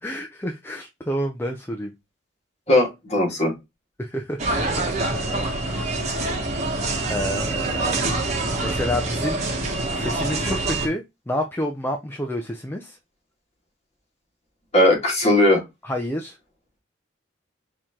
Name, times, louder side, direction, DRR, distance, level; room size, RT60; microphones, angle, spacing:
voice 1, 0.0-1.9 4.0-4.4 4.8-5.3 7.1-8.1 8.6-9.4 9.9-13.0 15.8-16.3, equal, 10° left, 0.5 m, -29 dB
voice 2, 2.7-3.5 14.7-15.6, left 1 dB, 30° left, 2.1 m, -18 dB
sound 1, 4.4-10.9, right 2 dB, 35° right, 1.2 m, -25 dB
4.7 x 2.9 x 3.6 m
head